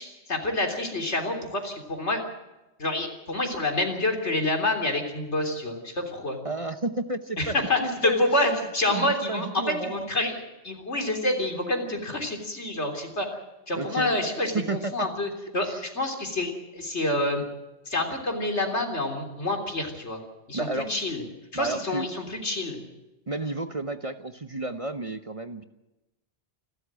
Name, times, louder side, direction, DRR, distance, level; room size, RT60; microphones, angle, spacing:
voice 1, 0.0-2.2 2.8-6.4 7.4-10.4 10.6-13.3 13.7-17.4 17.9-20.2 20.5-21.2 21.5-22.8, left 1 dB, 75° left, 3 dB, 3.8 m, -27 dB
voice 2, 6.4-8.2 8.9-10.1 13.7-14.1 14.5-15.1 15.6-15.8 20.5-20.9 21.5-22.1 23.3-25.6, right 2 dB, 30° right, 8 dB, 0.9 m, -32 dB
28.5 x 13.0 x 7.5 m, 1.0 s
omnidirectional pair, 1.2 m